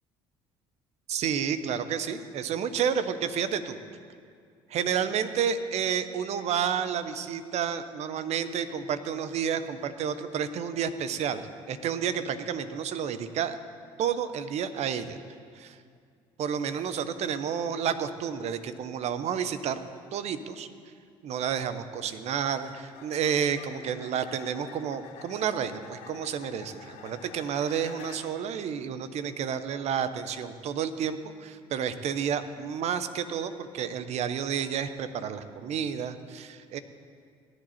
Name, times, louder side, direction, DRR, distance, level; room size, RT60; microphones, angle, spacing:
voice 1, 1.1-3.8 4.7-13.6 14.0-15.2 15.5-15.8 16.4-19.8 20.1-20.7 21.2-36.8, right 8 dB, 60° right, 11 dB, 1.0 m, -30 dB
sound 1, 19.9-20.1 22.5-28.5 32.1-32.4, left 7 dB, 70° left, 1.4 m, -49 dB
17.5 x 11.0 x 4.3 m, 2.2 s
hypercardioid pair, 60°, 13 cm